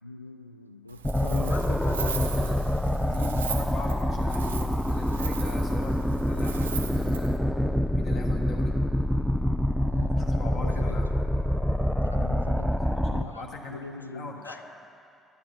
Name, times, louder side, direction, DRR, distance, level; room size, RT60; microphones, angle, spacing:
voice 1, 0.0-1.5 9.8-10.2 10.5-11.0 12.1-12.8 13.0-14.6, left 2 dB, 90° left, 9 dB, 0.3 m, -43 dB
Wind, 0.9-7.4, right 7 dB, 80° right, 0.4 m, -39 dB
sound 1, 1.0-13.2, left 1 dB, ahead, 0.5 m, -26 dB
voice 2, 1.3-2.6 3.0-7.4 7.9-8.7 10.1-11.1 13.2-14.6, left 3 dB, 50° left, 2 dB, 1.2 m, -39 dB
10.5 x 10.5 x 5.8 m, 2.5 s
figure-of-eight pair, 50°, 0 cm